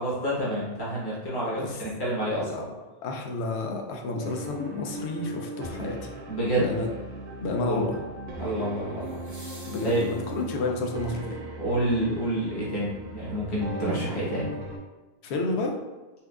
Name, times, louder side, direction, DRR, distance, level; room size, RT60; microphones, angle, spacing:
voice 1, 0.0-2.7 6.3-6.7 7.6-7.9 8.4-9.2 9.8-10.0 11.6-14.5, right 1 dB, 25° left, -7 dB, 1.0 m, -28 dB
voice 2, 3.0-6.0 6.6-6.9 7.4-8.0 9.7-11.4 15.2-15.8, left 2 dB, 80° left, 1 dB, 0.9 m, -30 dB
sound 1, 3.4-3.5 9.0-10.8 13.0-13.1, right 1 dB, 30° right, 0.3 m, -50 dB
sound 2, 4.2-14.8, right 1 dB, 60° right, 0.7 m, -38 dB
4.2 x 2.2 x 2.4 m, 1.2 s
omnidirectional pair, 1.1 m